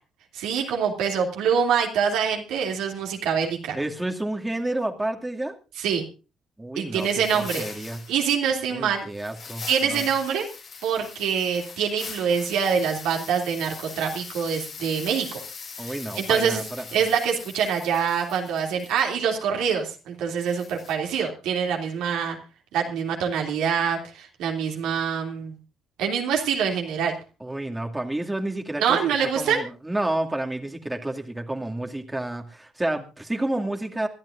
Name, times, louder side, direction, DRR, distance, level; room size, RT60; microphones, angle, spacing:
voice 1, 0.3-3.8 5.8-6.0 6.7-7.7 8.1-9.0 9.7-10.5 10.8-15.4 15.8-16.6 16.9-22.4 22.7-25.6 26.0-27.1 28.8-29.6, right 7 dB, 75° right, 2 dB, 2.9 m, -25 dB
voice 2, 3.7-5.6 6.6-8.0 8.7-10.0 15.8-16.8 27.4-34.1, right 1 dB, 15° right, 3 dB, 2.4 m, -30 dB
sound 1, 6.9-8.4 9.1-19.1 20.4-20.9, left 5 dB, 55° left, 4.5 m, -41 dB
26.0 x 12.0 x 2.6 m, 0.32 s
hypercardioid pair, 50°, 0 cm